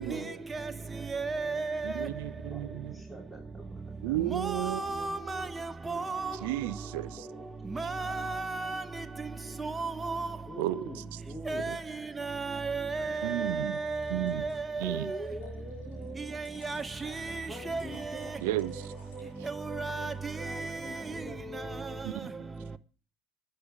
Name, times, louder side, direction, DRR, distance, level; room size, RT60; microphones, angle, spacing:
voice 1, 0.0-0.5 0.8-1.0 2.5-3.7 4.0-4.2 5.0-5.1 7.1-7.5 10.5-11.7 14.8-16.4 17.5-22.0, equal, 5° left, 3.1 m, -44 dB
voice 2, 1.1-2.1 4.3-6.4 7.7-9.0 9.6-10.3 11.5-11.8 12.2-15.2 16.3-18.3 19.4-21.0, right 3 dB, 20° right, 0.7 m, -34 dB
voice 3, 1.8-2.9 4.0-5.3 6.4-7.3 10.6-11.0 11.7-11.8 13.2-13.8 14.1-14.4 14.8-15.1 18.4-18.8 22.0-22.3, right 17 dB, 65° right, 0.5 m, -33 dB
sound 1, 3.5-4.1 13.7-21.1, left 2 dB, 75° left, 5.6 m, -58 dB
11.5 x 7.8 x 5.0 m
hypercardioid pair, 70°, 0 cm